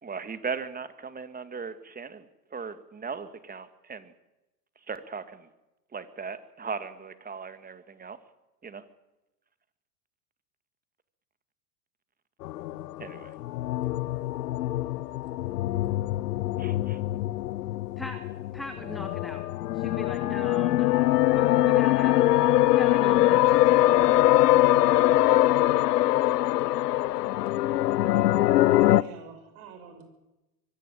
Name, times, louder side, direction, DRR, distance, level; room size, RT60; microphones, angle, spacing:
voice 1, 0.0-2.3 2.5-4.1 4.9-5.5 5.9-8.2 8.6-8.8 13.0-13.3 16.6-17.0, right 5 dB, 20° right, 11 dB, 2.1 m, -38 dB
sound 1, 12.4-29.0, left 15 dB, 80° left, 0.8 m, -23 dB
voice 2, 18.5-19.4 19.7-22.2 22.7-24.3, equal, ahead, 7 dB, 2.0 m, -40 dB
voice 3, 28.8-30.0, right 6 dB, 60° right, 7 dB, 6.9 m, -47 dB
24.0 x 17.0 x 8.8 m, 0.98 s
hypercardioid pair, 90°, 47 cm